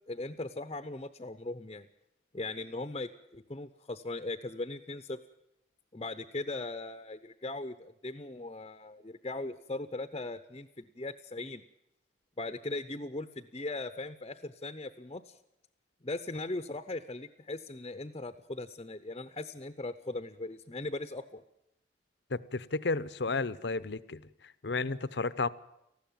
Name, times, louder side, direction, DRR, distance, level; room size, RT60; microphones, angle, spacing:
voice 1, 0.1-1.9 2.3-5.2 5.9-11.6 12.4-15.4 16.0-21.4, left 2 dB, 30° left, 9 dB, 0.7 m, -39 dB
voice 2, 22.3-24.2 24.6-25.5, left 3 dB, 65° left, 16 dB, 0.8 m, -32 dB
19.0 x 15.0 x 9.2 m, 0.84 s
head